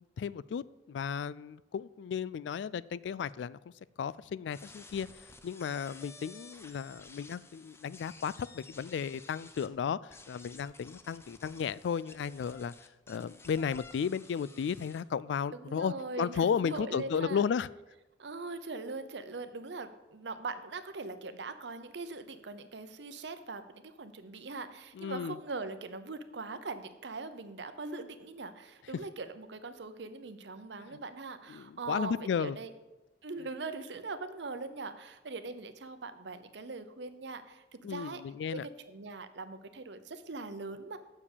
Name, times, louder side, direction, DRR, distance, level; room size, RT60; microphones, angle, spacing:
voice 1, 0.0-3.6 4.0-12.7 13.1-17.7 24.9-25.4 31.5-32.6 37.8-38.7, left 7 dB, 70° left, 19 dB, 0.3 m, -34 dB
sound 1, 4.5-9.7 10.1-15.0, left 3 dB, 15° left, 0.6 m, -53 dB
voice 2, 15.5-17.5 18.2-32.7 33.2-38.2 38.5-41.0, right 3 dB, 70° right, 10 dB, 0.8 m, -41 dB
7.1 x 6.6 x 7.3 m, 1.1 s
head